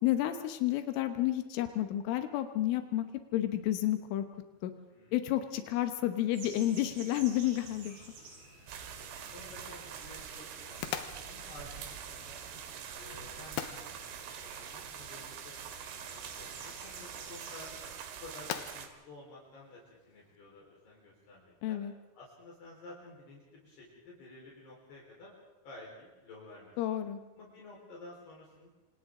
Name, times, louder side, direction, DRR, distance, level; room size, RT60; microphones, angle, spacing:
voice 1, 0.0-3.1 3.3-4.3 4.6-4.7 5.1-8.0 21.6-21.9 26.8-27.2, left 13 dB, 90° left, 8 dB, 3.7 m, -30 dB
voice 2, 4.9-5.2 9.0-12.4 13.0-13.6 14.3-15.5 15.8-17.7 18.2-19.8 20.1-21.8 22.1-25.3 25.6-26.7 27.4-28.7, left 2 dB, 60° left, -4 dB, 6.3 m, -52 dB
sound 1, 6.3-17.9, right 3 dB, 65° right, 9.3 m, -53 dB
sound 2, 8.7-20.4, left 11 dB, 75° left, 2.8 m, -47 dB
sound 3, 8.7-18.9, right 8 dB, 85° right, 4.3 m, -45 dB
29.5 x 26.5 x 3.8 m, 1.1 s
omnidirectional pair, 5.5 m